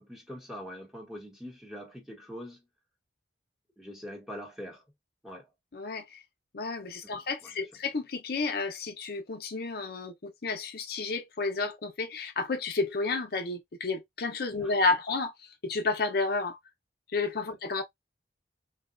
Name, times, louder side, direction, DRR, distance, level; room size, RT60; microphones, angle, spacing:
voice 1, 0.0-2.6 3.8-4.8 5.2-5.5 7.0-7.5 14.6-14.7, equal, ahead, 1.0 m, -43 dB
voice 2, 5.7-6.2 6.5-16.6 17.1-17.8, left 3 dB, 55° left, 0.6 m, -31 dB
3.8 x 2.2 x 2.4 m
head